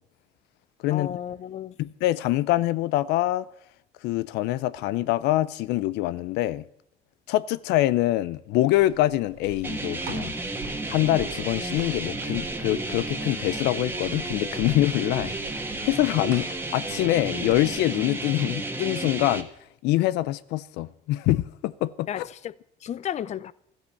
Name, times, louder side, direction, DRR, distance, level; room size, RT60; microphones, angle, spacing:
voice 1, 0.9-1.7 22.1-22.5 22.8-23.5, left 10 dB, 40° left, 0.5 m, -33 dB
voice 2, 1.8-3.5 4.0-6.6 7.3-10.3 10.9-19.5 19.8-22.3, left 16 dB, 90° left, 0.5 m, -25 dB
sound 1, 8.7-17.8, right 7 dB, 85° right, 1.6 m, -45 dB
sound 2, 9.6-19.4, right 2 dB, 10° right, 1.6 m, -32 dB
13.5 x 10.0 x 7.0 m
cardioid pair, 110°, 17 cm